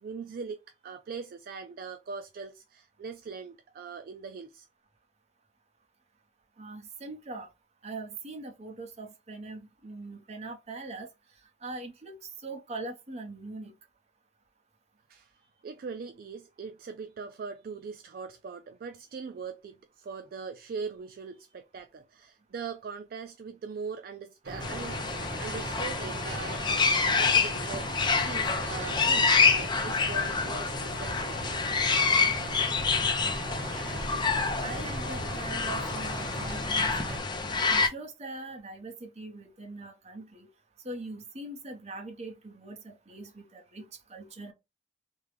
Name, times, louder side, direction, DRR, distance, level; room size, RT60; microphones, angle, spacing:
voice 1, 0.0-0.6 0.8-4.7 15.1-15.3 15.6-25.0 25.4-26.8 27.1-31.4, right 5 dB, 50° right, 0.3 m, -41 dB
voice 2, 6.6-7.5 7.8-11.1 11.6-13.7 34.6-40.5 40.8-44.5, right 2 dB, 35° right, 0.8 m, -42 dB
sound 1, 24.4-37.2, right 1 dB, 75° right, 1.3 m, -38 dB
sound 2, 24.6-37.9, left 4 dB, 25° left, 0.5 m, -27 dB
3.5 x 2.2 x 3.3 m
head